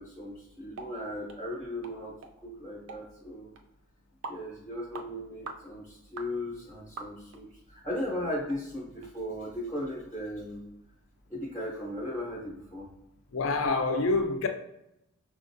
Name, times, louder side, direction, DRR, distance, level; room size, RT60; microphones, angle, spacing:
voice 1, 0.0-3.5 4.3-10.6 11.3-12.9, left 1 dB, 15° left, 0.6 m, -37 dB
sound 1, 0.8-0.9 1.3-1.4 1.8-2.0 2.2-2.3 2.9-3.0 3.6-3.7 4.2-4.4 4.9-5.1 5.5-5.6 6.2-6.3 7.0-7.4 7.9-8.0 8.5-8.6 9.0-9.1, right 4 dB, 85° right, 0.4 m, -42 dB
voice 2, 13.3-14.5, left 3 dB, 75° left, 0.4 m, -26 dB
5.5 x 2.3 x 2.6 m
head